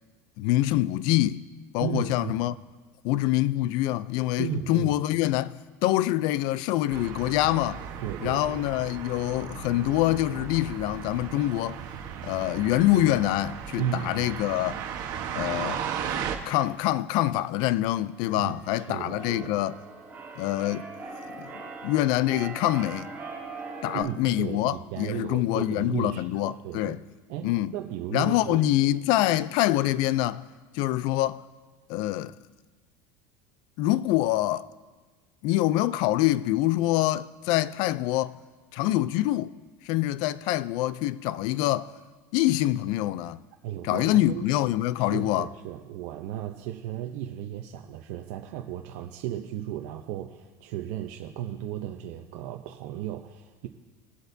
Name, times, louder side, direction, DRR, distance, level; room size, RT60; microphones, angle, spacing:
voice 1, 0.4-1.4 1.7-2.5 3.0-7.9 8.2-11.8 12.2-14.8 15.4-15.8 16.5-19.8 20.4-20.8 21.4-21.5 21.8-23.1 23.8-27.0 27.4-27.7 28.1-30.4 30.7-31.4 31.9-32.4 33.8-34.7 35.4-38.4 38.7-39.5 39.8-41.9 42.3-43.4 43.8-45.5, left 15 dB, 60° left, 0.4 m, -25 dB
voice 2, 1.8-2.4 4.4-4.9 8.0-8.6 13.8-14.3 18.3-19.6 23.8-27.0 27.3-28.6 43.6-44.5 45.0-53.7, right 11 dB, 70° right, 0.7 m, -35 dB
sound 1, 6.9-16.4, right 8 dB, 50° right, 1.2 m, -36 dB
Keyboard (musical), 18.1-24.0, right 3 dB, 20° right, 3.2 m, -41 dB
20.5 x 8.0 x 2.7 m
supercardioid pair, 130°, 9 cm